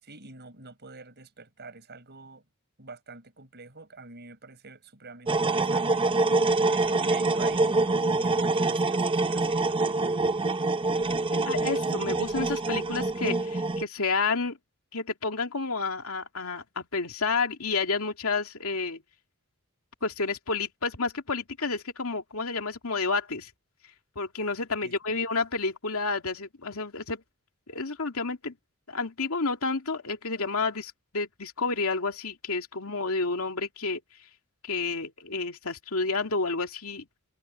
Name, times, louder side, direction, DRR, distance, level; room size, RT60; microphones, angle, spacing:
voice 1, 0.0-2.4 2.8-6.3 6.7-7.7 8.0-10.2 24.8-25.2, right 3 dB, 50° right, 6.0 m, -47 dB
sound 1, 5.3-13.8, right 3 dB, 25° right, 0.6 m, -25 dB
voice 2, 11.3-14.6 14.9-19.0 20.0-23.5 24.2-27.2 27.7-28.5 28.9-34.0 34.6-37.1, left 4 dB, 75° left, 2.5 m, -30 dB
head